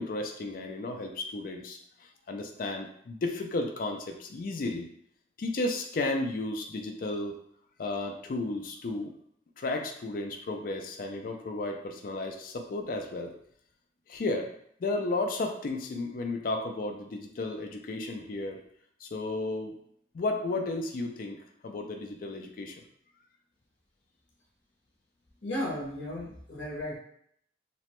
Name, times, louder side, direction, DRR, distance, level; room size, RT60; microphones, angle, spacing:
voice 1, 0.0-4.9 5.4-7.4 7.8-9.1 9.6-13.3 14.1-14.5 14.8-18.6 19.0-19.7 20.1-21.4 21.6-22.8, left 2 dB, 50° left, 4 dB, 0.4 m, -33 dB
voice 2, 25.4-27.0, left 1 dB, 75° left, -3 dB, 0.8 m, -35 dB
2.9 x 2.1 x 2.9 m, 0.67 s
head